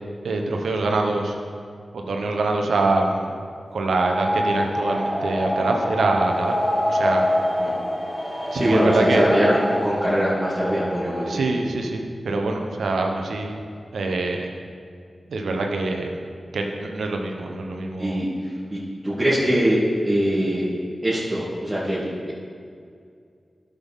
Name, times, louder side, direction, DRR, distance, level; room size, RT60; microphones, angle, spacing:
voice 1, 0.2-1.4 1.9-3.3 3.7-6.6 6.8-7.2 8.5-9.3 11.3-13.6 13.9-14.5 15.3-16.1 16.5-18.2, right 2 dB, 85° right, 2 dB, 0.9 m, -24 dB
sound 1, 3.9-11.5, equal, 20° left, 1.5 m, -25 dB
voice 2, 8.5-11.4 18.0-18.3 18.7-20.7 21.0-22.1, equal, 25° right, -10 dB, 2.4 m, -22 dB
11.5 x 6.8 x 3.7 m, 2.3 s
cardioid pair, 40°, 0 cm